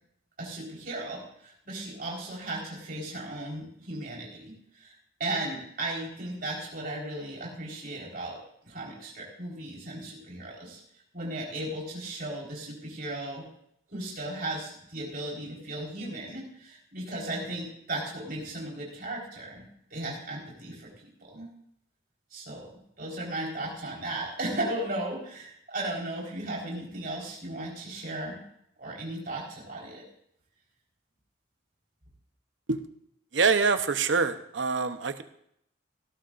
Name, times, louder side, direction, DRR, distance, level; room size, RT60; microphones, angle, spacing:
voice 1, 0.4-4.9 5.2-10.8 11.1-13.4 13.9-21.5 22.3-28.4 28.8-30.1, right 1 dB, 45° right, -3 dB, 4.3 m, -36 dB
voice 2, 33.3-35.2, right 4 dB, 65° right, 10 dB, 0.8 m, -25 dB
18.0 x 12.5 x 2.6 m, 0.72 s
head